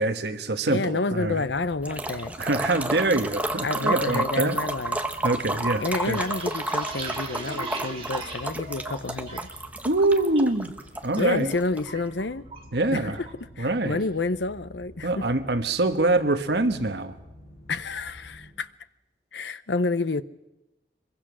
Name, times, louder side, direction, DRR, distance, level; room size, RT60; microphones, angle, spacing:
voice 1, 0.0-1.4 2.4-4.6 5.2-6.2 9.8-10.7 11.0-11.5 12.7-13.2 13.6-14.0 15.0-17.2, right 2 dB, 75° right, 1.3 m, -24 dB
voice 2, 0.7-2.3 3.6-5.0 5.8-9.5 11.2-12.5 12.9-13.3 13.6-15.3 17.7-18.7 19.3-20.2, left 3 dB, 90° left, 0.8 m, -29 dB
sound 1, 1.1-18.5, equal, 45° left, 8.0 m, -49 dB
sound 2, 1.8-11.9, right 2 dB, 10° right, 1.1 m, -31 dB
sound 3, 6.1-9.6 9.9-10.4 10.8-11.2 11.5-12.8 13.1-13.3 13.7-14.1, right 3 dB, 30° right, 3.7 m, -39 dB
24.5 x 22.5 x 6.3 m
head